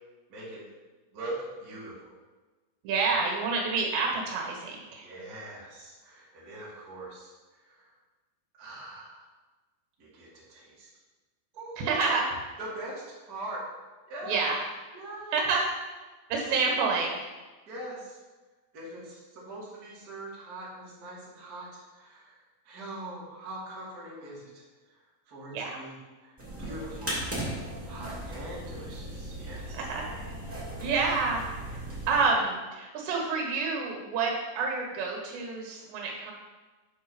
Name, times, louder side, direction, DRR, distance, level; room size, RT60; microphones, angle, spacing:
voice 1, 0.3-0.6 1.1-1.9 5.0-7.3 7.7-7.8 8.6-9.2 10.0-10.9 11.5-12.2 12.6-13.6 14.1-14.4 14.9-15.4 16.6-16.7 17.7-18.2 18.7-22.4 22.6-24.6 25.3-26.3 26.6-27.2 27.9-29.7, right 1 dB, 30° right, -7 dB, 2.2 m, -42 dB
voice 2, 2.8-5.1 11.8-12.3 14.2-14.6 15.3-15.6 16.3-17.2 25.5-25.8 29.7-30.3 30.8-36.3, right 4 dB, 80° right, 0 dB, 3.6 m, -28 dB
sound 1, 26.4-32.3, right 1 dB, 10° right, 0.6 m, -37 dB
7.9 x 5.3 x 5.5 m, 1.3 s
omnidirectional pair, 5.0 m